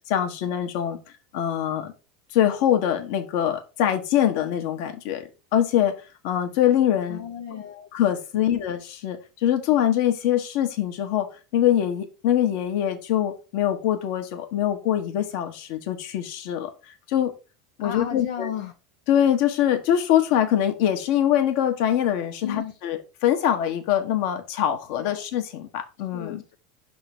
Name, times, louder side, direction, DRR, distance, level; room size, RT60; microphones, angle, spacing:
voice 1, 0.1-1.0 1.3-1.9 2.3-5.9 6.2-7.2 7.9-17.3 17.8-18.5 19.1-26.4, left 10 dB, 65° left, 1.2 m, -23 dB
voice 2, 7.1-7.9 8.3-8.6 17.8-18.7 22.4-22.8 25.0-25.2 26.1-26.5, left 8 dB, 80° left, 0.7 m, -35 dB
5.9 x 3.9 x 5.0 m
hypercardioid pair, 100°, 0 cm